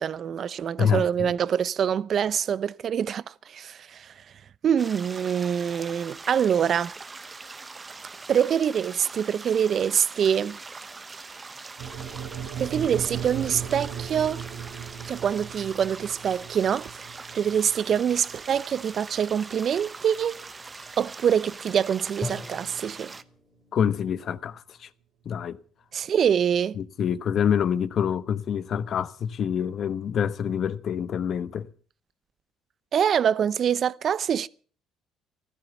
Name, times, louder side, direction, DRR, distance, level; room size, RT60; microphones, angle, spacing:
voice 1, 0.0-4.1 4.6-6.9 8.3-10.6 12.6-14.4 15.1-17.1 17.3-20.3 21.0-23.1 25.9-26.8 32.9-34.5, right 8 dB, 50° right, 0.7 m, -25 dB
voice 2, 0.8-1.3 23.7-24.9 25.2-25.6 26.8-31.7, left 8 dB, 55° left, 1.0 m, -26 dB
sound 1, 4.8-23.2, right 4 dB, 25° right, 1.0 m, -42 dB
sound 2, 11.8-20.0, right 8 dB, 85° right, 3.3 m, -37 dB
Drum, 22.2-24.1, left 2 dB, 10° left, 3.8 m, -39 dB
14.5 x 13.5 x 7.0 m
supercardioid pair, 85°, 0 cm